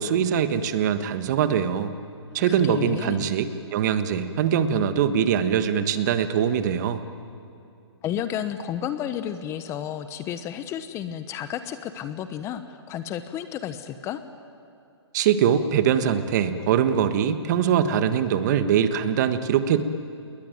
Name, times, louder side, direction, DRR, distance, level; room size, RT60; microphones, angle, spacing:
voice 1, 0.0-1.9 2.3-7.0 15.1-19.8, right 8 dB, 40° right, 11 dB, 1.5 m, -22 dB
voice 2, 2.5-3.3 8.0-14.2, left 10 dB, 20° left, 11 dB, 0.9 m, -32 dB
28.5 x 20.5 x 9.3 m, 2.5 s
hypercardioid pair, 145°, 15 cm